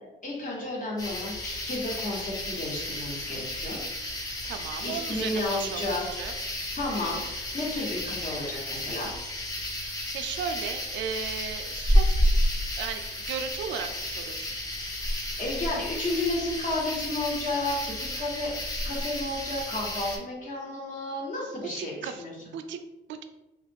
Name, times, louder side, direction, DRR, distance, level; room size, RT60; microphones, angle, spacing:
voice 1, 0.2-3.8 4.8-6.0 6.7-9.1 15.4-18.5 18.8-22.3, left 2 dB, 40° left, -4 dB, 1.2 m, -32 dB
sound 1, 1.0-20.2, left 1 dB, 20° left, 0.8 m, -31 dB
voice 2, 4.4-6.3 9.9-12.4 12.8-14.5 21.6-22.2 22.5-22.8 23.1-23.2, right 7 dB, 70° right, 7 dB, 0.4 m, -36 dB
2.9 x 2.4 x 3.5 m, 1.0 s
cardioid pair, 90°, 20 cm